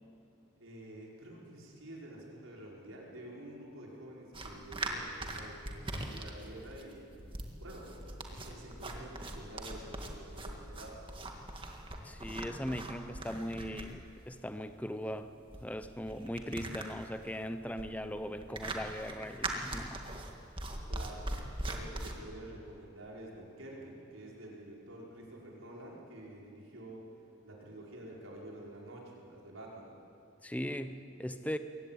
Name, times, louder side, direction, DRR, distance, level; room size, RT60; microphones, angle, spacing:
voice 1, 0.6-7.1 7.6-11.0 20.7-27.1 27.4-29.9, right 1 dB, 85° right, -3 dB, 5.3 m, -49 dB
sound 1, 4.3-22.1, right 2 dB, 25° right, 1.9 m, -41 dB
voice 2, 12.0-15.3 15.6-20.0 30.4-31.6, equal, 5° left, 10 dB, 0.7 m, -39 dB
22.5 x 17.5 x 9.1 m, 2.6 s
head